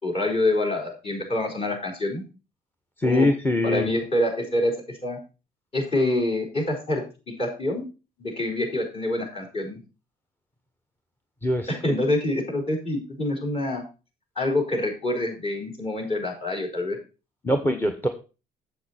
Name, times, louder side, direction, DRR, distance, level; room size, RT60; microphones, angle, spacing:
voice 1, 0.0-2.2 3.0-3.3 3.6-4.8 5.0-5.2 5.7-7.8 8.2-9.8 11.7-13.8 14.4-17.0, left 1 dB, 35° left, -1 dB, 4.3 m, -26 dB
voice 2, 3.0-3.9 11.4-11.9 17.4-18.1, left 1 dB, 10° left, 7 dB, 1.0 m, -23 dB
7.8 x 7.6 x 4.3 m, 0.32 s
cardioid pair, 110°, 17 cm